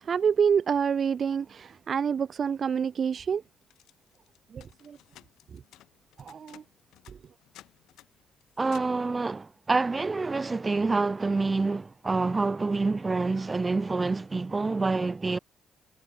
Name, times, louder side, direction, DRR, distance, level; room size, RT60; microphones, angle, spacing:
voice 1, 0.1-3.4 4.5-5.0 6.2-6.6, right 7 dB, 50° right, 0.5 m, -27 dB
sound 1, 3.6-9.1, left 14 dB, 85° left, 3.2 m, -56 dB
voice 2, 8.6-15.4, right 3 dB, 25° right, 1.0 m, -27 dB
cardioid pair, 90°, 0 cm